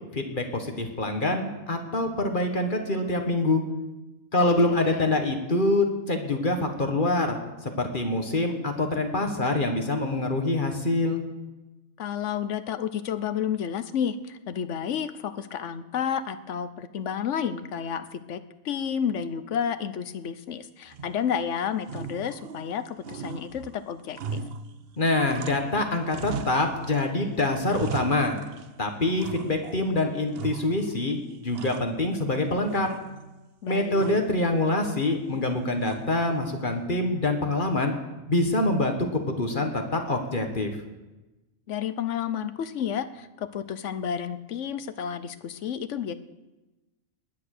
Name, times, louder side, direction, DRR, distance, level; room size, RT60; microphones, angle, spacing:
voice 1, 0.1-3.6 4.3-11.2 25.0-28.4 28.8-32.9 33.7-37.9 38.3-40.7, left 2 dB, 35° left, 5 dB, 1.7 m, -25 dB
voice 2, 4.3-5.1 12.0-24.4 33.6-34.2 41.7-46.1, left 8 dB, 60° left, 12 dB, 1.1 m, -31 dB
sound 1, 20.9-21.5 21.8-22.8 23.0-25.8 26.1-27.1 27.4-28.8 29.2-29.9 30.3-31.0 31.3-32.4 32.7-33.4 34.0-34.4 35.8-36.3, right 6 dB, 55° right, 0.8 m, -38 dB
19.5 x 10.0 x 6.6 m, 1.1 s
omnidirectional pair, 1.5 m